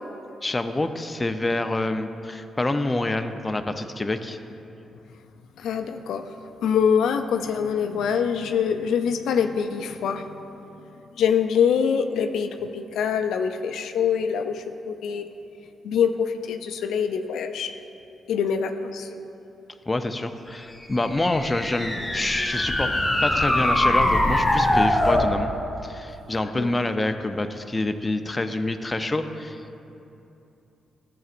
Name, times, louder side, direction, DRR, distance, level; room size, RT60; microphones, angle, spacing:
voice 1, 0.4-4.4 19.9-22.9 23.2-25.5 25.8-29.8, left 2 dB, 20° left, 7 dB, 0.5 m, -27 dB
voice 2, 5.6-6.3 6.6-10.3 11.2-15.3 15.8-17.7 18.3-19.1 26.6-26.8, left 7 dB, 80° left, 6 dB, 0.4 m, -24 dB
sound 1, 20.9-25.3, left 1 dB, 5° left, 1.6 m, -22 dB
13.5 x 7.6 x 2.5 m, 2.8 s
supercardioid pair, 60°, 0 cm